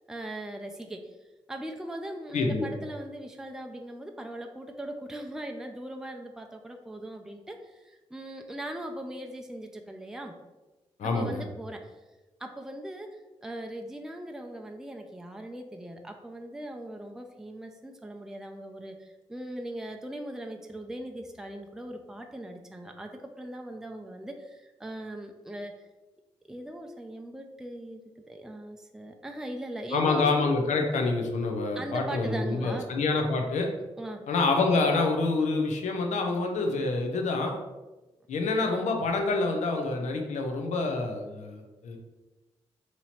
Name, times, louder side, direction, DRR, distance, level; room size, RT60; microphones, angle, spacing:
voice 1, 0.1-1.2 1.5-10.3 11.0-12.0 12.4-25.8 26.5-30.2 31.8-32.9 34.0-34.2, right 1 dB, 5° right, 3 dB, 0.5 m, -40 dB
voice 2, 2.3-2.7 11.0-11.4 29.9-33.7 34.3-37.6 38.3-42.0, left 3 dB, 75° left, 3 dB, 0.6 m, -27 dB
2.9 x 2.7 x 4.2 m, 1.1 s
supercardioid pair, 40°, 12 cm